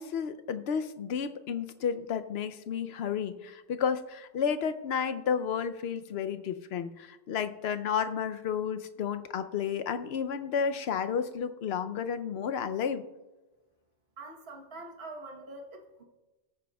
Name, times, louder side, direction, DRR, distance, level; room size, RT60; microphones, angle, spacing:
voice 1, 0.0-13.0, left 7 dB, 65° left, 10 dB, 0.8 m, -32 dB
voice 2, 14.2-16.0, right 2 dB, 60° right, 3 dB, 1.3 m, -44 dB
18.5 x 9.3 x 2.3 m, 1.1 s
omnidirectional pair, 1.2 m